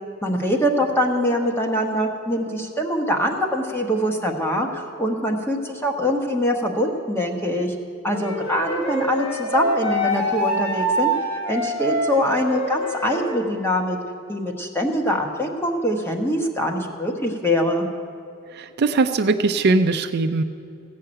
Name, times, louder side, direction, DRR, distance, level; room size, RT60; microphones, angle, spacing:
voice 1, 0.2-7.7 8.0-11.1 11.5-14.0 14.3-17.9, equal, 10° left, 2 dB, 1.1 m, -23 dB
Wind instrument woodwind instrument, 8.1-13.4, right 1 dB, 85° left, 3.8 m, -25 dB
voice 2, 18.5-20.4, right 3 dB, 50° right, 7 dB, 0.4 m, -20 dB
15.5 x 5.7 x 8.7 m, 2.6 s
head